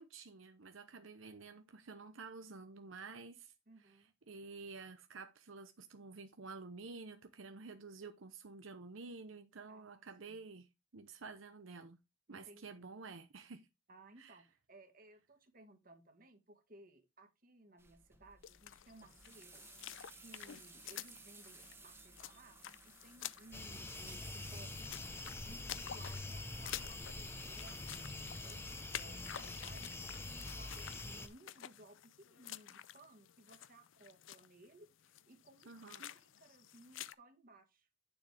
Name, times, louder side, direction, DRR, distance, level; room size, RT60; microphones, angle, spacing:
voice 1, 0.0-3.5 3.8-3.9 4.3-10.7 10.9-12.0 12.3-13.7 14.2-14.4 35.7-36.1, right 4 dB, 85° right, 0.8 m, -51 dB
voice 2, 3.7-4.1 9.7-10.4 12.3-12.9 13.9-22.6 22.8-25.0 25.4-28.1 28.4-37.9, right 2 dB, 45° right, 1.8 m, -61 dB
sound 1, 17.8-29.9, right 3 dB, 15° right, 1.3 m, -60 dB
sound 2, 18.4-37.1, left 11 dB, 75° left, 0.5 m, -51 dB
sound 3, 23.5-31.3, left 2 dB, 10° left, 0.9 m, -45 dB
9.1 x 7.1 x 3.4 m
head